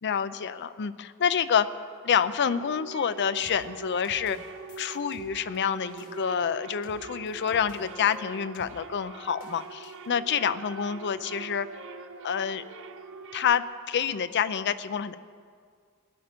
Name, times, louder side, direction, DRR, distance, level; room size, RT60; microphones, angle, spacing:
voice 1, 0.0-1.7 2.0-4.4 4.8-11.7 12.2-12.6 13.3-15.1, left 7 dB, 55° left, 13 dB, 0.5 m, -27 dB
sound 1, 1.6-13.6, right 5 dB, 60° right, 0.6 m, -44 dB
sound 2, 3.4-8.2 8.5-8.8 9.4-10.1, equal, 80° left, 2.6 m, -53 dB
Wind instrument woodwind instrument, 6.7-9.8 10.1-13.5, left 1 dB, 5° right, 0.7 m, -52 dB
16.5 x 11.0 x 5.2 m, 2.1 s
head